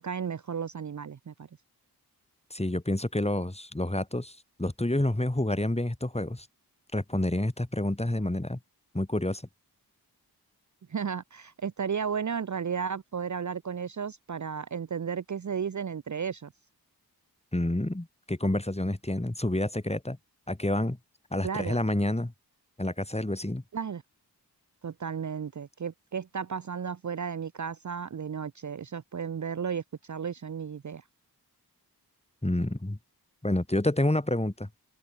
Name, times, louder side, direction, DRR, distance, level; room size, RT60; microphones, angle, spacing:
voice 1, 0.0-1.5 10.9-16.5 21.4-21.8 23.7-24.0 24.8-31.0, right 7 dB, 45° right, 0.7 m, -34 dB
voice 2, 2.5-6.5 6.9-8.6 8.9-9.4 17.5-20.2 20.5-21.0 21.3-22.3 22.8-23.6 32.4-33.0 33.4-34.7, left 1 dB, 15° left, 2.7 m, -28 dB
open air
cardioid pair, 45°, 39 cm